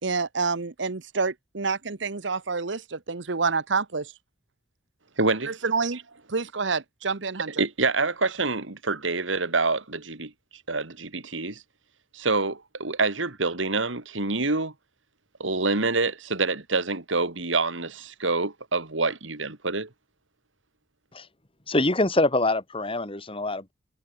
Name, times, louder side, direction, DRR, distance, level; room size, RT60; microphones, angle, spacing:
voice 1, 0.0-4.1 5.5-6.0 6.3-7.5, right 4 dB, 70° right, 1.1 m, -28 dB
voice 2, 5.2-5.5 7.6-10.3 10.7-11.6 12.1-14.7 15.4-19.9, right 3 dB, 85° right, 2.8 m, -26 dB
voice 3, 21.7-23.7, left 2 dB, 30° left, 3.4 m, -24 dB
head